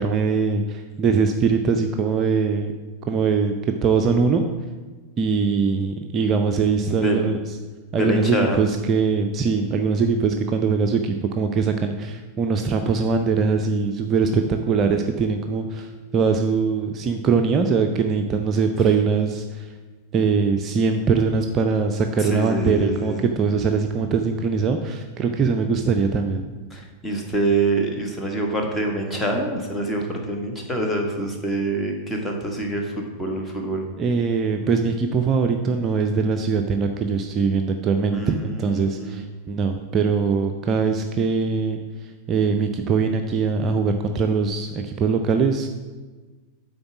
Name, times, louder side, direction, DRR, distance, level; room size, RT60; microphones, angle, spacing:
voice 1, 0.0-2.7 3.1-4.5 5.2-7.4 7.9-19.7 20.1-26.4 34.0-41.8 42.3-45.7, right 5 dB, 30° right, 5 dB, 0.5 m, -22 dB
voice 2, 6.9-7.3 7.9-8.6 22.2-23.2 26.7-33.9 38.1-39.2, right 2 dB, 10° left, 1 dB, 1.4 m, -26 dB
8.7 x 3.9 x 6.0 m, 1.3 s
figure-of-eight pair, 90°, 0 cm